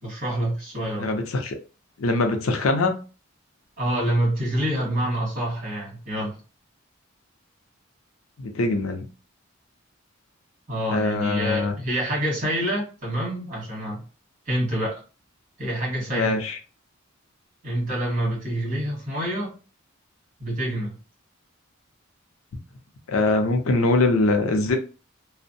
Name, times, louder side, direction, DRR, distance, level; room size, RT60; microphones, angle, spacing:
voice 1, 0.0-1.1 3.8-6.3 10.7-14.0 14.5-14.9 15.6-16.4 17.6-19.5 20.4-20.9, right 1 dB, 40° right, -3 dB, 1.4 m, -27 dB
voice 2, 1.0-1.5 2.0-2.9 8.4-9.1 10.9-11.7 16.1-16.6 23.1-24.8, left 2 dB, 80° left, 5 dB, 0.5 m, -22 dB
2.5 x 2.0 x 2.6 m, 0.34 s
head